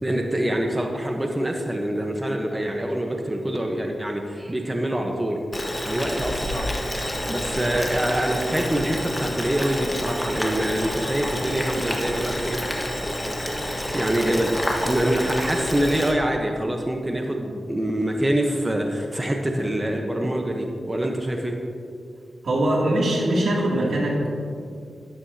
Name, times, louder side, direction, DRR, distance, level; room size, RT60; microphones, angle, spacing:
voice 1, 0.0-5.4 5.8-12.6 13.9-21.6, right 1 dB, 15° right, 2 dB, 0.9 m, -25 dB
Boiling, 5.5-16.1, left 1 dB, 15° left, 1.5 m, -28 dB
voice 2, 22.4-24.3, right 1 dB, 70° right, -3 dB, 2.5 m, -22 dB
12.5 x 12.0 x 2.8 m, 2.4 s
cardioid pair, 80°, 0 cm